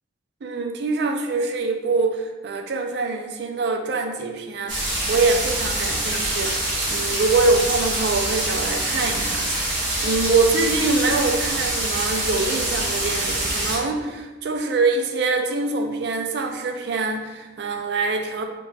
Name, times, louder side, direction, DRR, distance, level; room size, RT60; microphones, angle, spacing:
voice 1, 0.4-18.4, right 3 dB, 60° right, 4 dB, 0.4 m, -24 dB
sound 1, 4.7-13.8, right 1 dB, 85° right, 1.4 m, -25 dB
4.5 x 2.6 x 2.3 m, 1.2 s
head